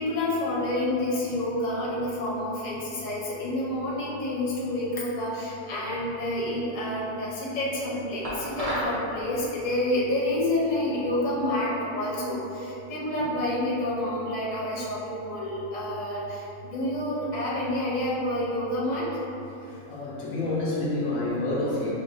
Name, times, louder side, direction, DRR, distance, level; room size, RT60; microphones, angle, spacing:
voice 1, 0.0-16.4 16.7-19.0, left 1 dB, 35° left, -7 dB, 0.8 m, -28 dB
sound 1, 8.2-9.0, equal, 35° right, 0.6 m, -30 dB
voice 2, 19.6-21.9, left 2 dB, 70° left, -6 dB, 1.0 m, -29 dB
6.3 x 2.3 x 2.5 m, 2.9 s
omnidirectional pair, 1.6 m